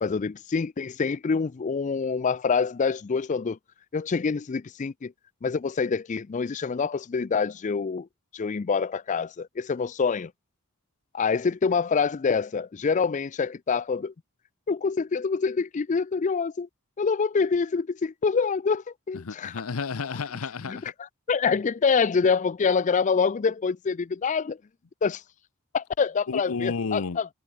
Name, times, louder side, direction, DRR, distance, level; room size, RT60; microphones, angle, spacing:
voice 1, 0.0-3.6 3.9-5.1 5.4-8.1 8.3-10.3 11.1-14.1 14.7-16.7 17.0-19.6 20.7-24.6 25.0-25.2 25.7-27.3, left 5 dB, 35° left, 0.4 m, -26 dB
voice 2, 19.1-20.9 26.3-27.2, left 4 dB, 70° left, 0.7 m, -31 dB
head